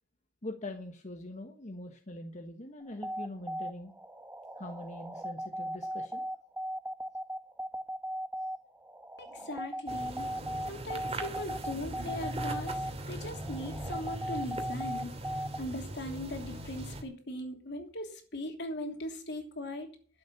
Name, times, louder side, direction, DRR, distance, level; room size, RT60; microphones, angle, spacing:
voice 1, 0.4-3.9 4.6-6.3, left 1 dB, 40° left, 4 dB, 1.4 m, -43 dB
sound 1, 2.8-15.6, right 1 dB, 10° right, 1.1 m, -38 dB
voice 2, 9.2-10.3 10.7-15.1 15.6-19.9, left 1 dB, 65° left, 5 dB, 3.0 m, -39 dB
sound 2, 9.9-17.0, right 1 dB, 35° right, 2.4 m, -40 dB
12.5 x 7.8 x 7.1 m, 0.42 s
head